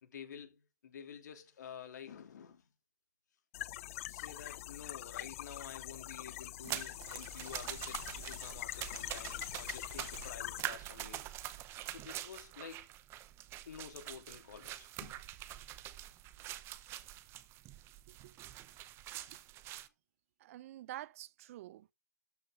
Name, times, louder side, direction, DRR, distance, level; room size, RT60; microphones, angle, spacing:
voice 1, 0.0-2.7 4.1-11.3 11.9-12.9 13.7-15.2, left 8 dB, 80° left, 2.9 m, -50 dB
sound 1, 3.5-10.6, left 15 dB, 50° left, 0.5 m, -44 dB
sound 2, 6.6-19.9, right 14 dB, 25° right, 0.8 m, -45 dB
voice 2, 20.4-21.9, right 14 dB, 50° right, 0.5 m, -49 dB
13.0 x 6.5 x 3.7 m
hypercardioid pair, 145°, 9 cm